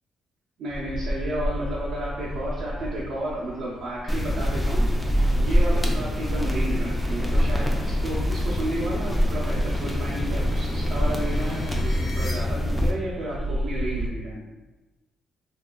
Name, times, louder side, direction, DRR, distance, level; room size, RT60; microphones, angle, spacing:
voice 1, 0.6-14.5, right 1 dB, 65° right, -7 dB, 0.6 m, -32 dB
sound 1, 0.7-14.1, equal, 25° right, 0.8 m, -33 dB
sound 2, 1.4-12.3, left 2 dB, 30° left, 0.9 m, -49 dB
sound 3, 4.1-12.9, equal, 5° left, 0.4 m, -24 dB
2.7 x 2.3 x 2.3 m, 1.1 s
cardioid pair, 90°, 0 cm